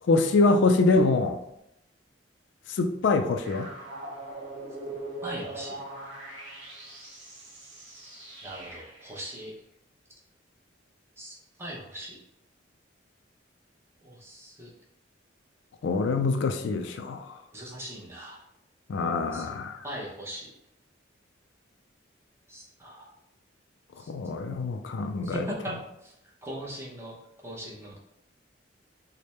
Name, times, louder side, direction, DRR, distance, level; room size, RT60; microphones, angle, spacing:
voice 1, 0.0-1.4 2.7-3.7 15.8-17.4 18.9-19.8 24.1-25.5, left 3 dB, 70° left, 6 dB, 0.3 m, -25 dB
sound 1, 3.4-9.1, right 2 dB, 65° right, 1.2 m, -41 dB
voice 2, 5.2-5.8 8.4-9.5 11.2-12.2 14.0-14.7 17.5-18.4 19.3-19.5 19.8-20.5 22.5-23.1 24.0-24.1 25.2-25.7 26.0-26.1 26.4-27.1 27.4-28.0, right 1 dB, 15° right, -4 dB, 0.7 m, -39 dB
3.3 x 2.1 x 4.2 m, 0.81 s
head